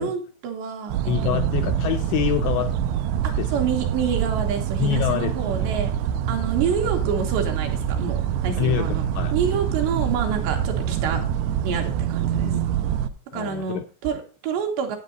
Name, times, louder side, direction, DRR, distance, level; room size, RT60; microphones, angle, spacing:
voice 1, 0.0-1.4 3.2-5.9 6.3-9.0 9.3-11.2 11.6-12.5 13.3-15.0, right 7 dB, 70° right, 3 dB, 3.3 m, -28 dB
sound 1, 0.9-13.1, right 9 dB, 90° right, 2.5 m, -25 dB
voice 2, 1.1-2.8 3.4-3.7 4.8-5.7 8.6-9.3 12.3-12.7 13.3-13.8, left 12 dB, 85° left, 6 dB, 2.6 m, -26 dB
9.8 x 9.0 x 3.9 m, 0.37 s
omnidirectional pair, 5.7 m